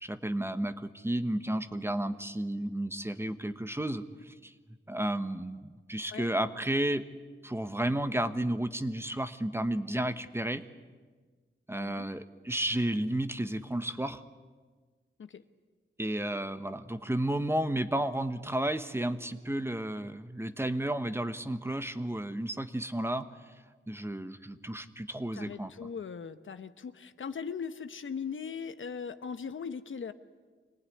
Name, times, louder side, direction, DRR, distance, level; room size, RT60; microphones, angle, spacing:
voice 1, 0.0-4.5 4.9-7.0 7.4-10.6 11.7-14.2 16.0-23.5 23.9-25.7, right 1 dB, 10° right, 10 dB, 1.0 m, -32 dB
voice 2, 25.3-30.1, left 6 dB, 70° left, 11 dB, 1.0 m, -39 dB
25.0 x 19.0 x 9.9 m, 1.4 s
wide cardioid pair, 110°, 21 cm